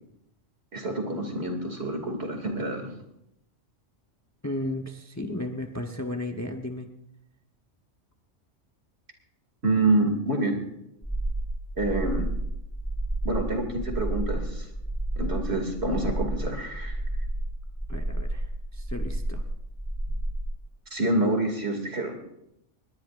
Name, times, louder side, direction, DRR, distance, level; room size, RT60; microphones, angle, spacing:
voice 1, 0.7-2.9 9.6-10.6 11.8-12.3 13.2-14.7 15.2-17.0 20.9-22.2, right 2 dB, 60° right, 3 dB, 2.8 m, -27 dB
voice 2, 4.4-6.9 17.9-19.4, left 1 dB, 15° left, 4 dB, 0.8 m, -34 dB
sound 1, 11.0-20.5, right 1 dB, 5° right, 2.0 m, -31 dB
21.0 x 18.0 x 2.6 m, 0.79 s
omnidirectional pair, 1.2 m